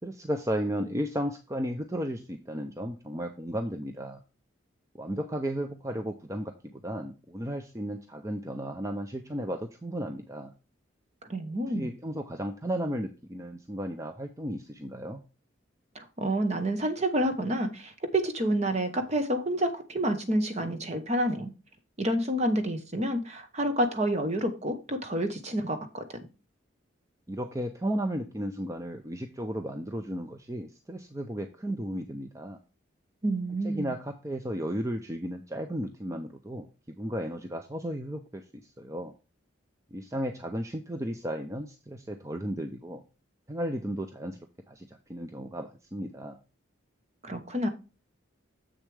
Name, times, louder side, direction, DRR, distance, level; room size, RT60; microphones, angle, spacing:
voice 1, 0.0-4.2 4.9-10.5 11.7-15.2 27.3-32.6 33.6-39.1 39.9-43.0 43.5-44.4 44.7-46.4, equal, 15° right, 0.5 m, -34 dB
voice 2, 11.2-11.9 15.9-21.5 22.0-26.0 33.2-33.9 47.2-47.7, right 1 dB, 35° right, 1.0 m, -29 dB
7.3 x 6.7 x 3.3 m
head